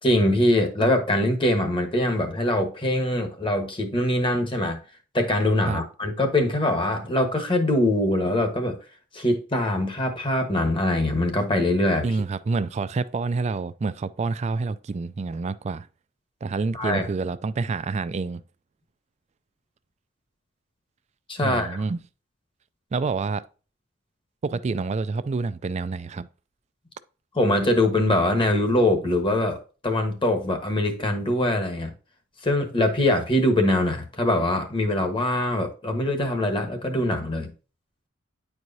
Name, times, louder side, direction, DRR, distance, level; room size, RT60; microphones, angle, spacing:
voice 1, 0.0-4.8 5.1-8.8 9.1-12.0 16.7-17.1 21.3-21.8 27.3-31.9 32.4-37.5, left 1 dB, 25° left, 1.3 m, -23 dB
voice 2, 12.0-15.9 16.4-18.4 21.4-22.0 22.9-23.4 24.4-26.3, right 4 dB, 35° right, 0.3 m, -28 dB
9.6 x 4.6 x 2.7 m
head